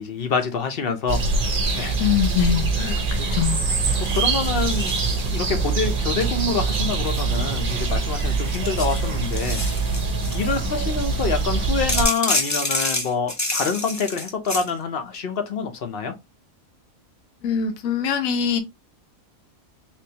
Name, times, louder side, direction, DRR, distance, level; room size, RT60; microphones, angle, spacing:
voice 1, 0.0-1.5 1.8-2.0 2.8-3.3 4.1-5.0 5.3-9.6 10.3-16.1, left 5 dB, 50° left, 0.8 m, -26 dB
sound 1, 1.1-12.1, right 3 dB, 45° right, 0.8 m, -24 dB
sound 2, 1.5-2.5 2.9-3.3 3.9-5.6 6.2-7.9 8.4-10.5 11.9-14.7, left 2 dB, 20° left, 0.5 m, -29 dB
voice 2, 2.0-2.7 3.3-3.6 17.4-18.6, left 8 dB, 75° left, 1.1 m, -22 dB
sound 3, 2.8-8.5, right 8 dB, 70° right, 0.9 m, -34 dB
3.6 x 3.0 x 2.8 m
omnidirectional pair, 1.5 m